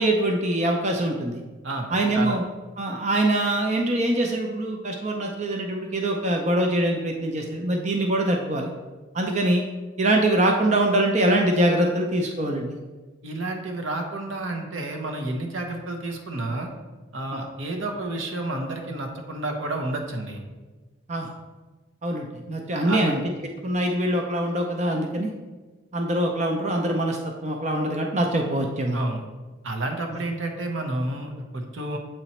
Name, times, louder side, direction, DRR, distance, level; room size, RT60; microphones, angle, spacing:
voice 1, 0.0-1.4 1.9-2.4 2.8-8.7 9.1-9.6 10.0-12.8 17.3-17.4 21.1-21.3 22.0-23.2 23.6-25.3 25.9-29.0 30.1-30.2, right 1 dB, 35° right, 2 dB, 0.5 m, -23 dB
voice 2, 1.6-2.4 13.2-16.7 17.1-20.5 22.9-23.1 28.9-29.3 29.6-32.0, right 2 dB, 85° right, 3 dB, 0.9 m, -30 dB
7.8 x 3.0 x 4.2 m, 1.3 s
head